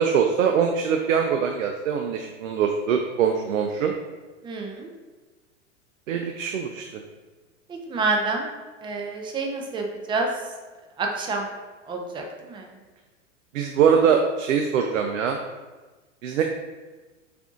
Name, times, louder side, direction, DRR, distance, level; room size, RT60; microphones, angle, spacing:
voice 1, 0.0-3.9 6.1-7.0 13.5-15.4 16.2-16.4, right 7 dB, 80° right, 4 dB, 0.5 m, -23 dB
voice 2, 4.4-4.9 7.9-8.5 8.8-10.3 11.0-11.5 11.9-12.6, right 3 dB, 15° right, 2 dB, 0.4 m, -28 dB
6.7 x 2.6 x 2.4 m, 1.3 s
hypercardioid pair, 110°, 38 cm